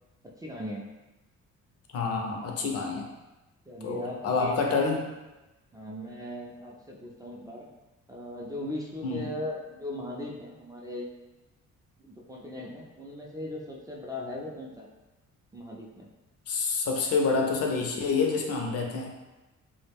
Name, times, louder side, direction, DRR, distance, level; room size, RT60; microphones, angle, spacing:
voice 1, 0.2-0.9 3.7-5.1 5.7-7.7 8.1-11.1 12.0-14.9 15.5-16.1, left 1 dB, 10° right, -4 dB, 0.3 m, -38 dB
voice 2, 1.9-3.1 3.8-5.0 9.0-9.3 16.5-19.1, left 4 dB, 55° left, 1 dB, 0.5 m, -27 dB
2.3 x 2.1 x 3.3 m, 1.1 s
cardioid pair, 90°, 30 cm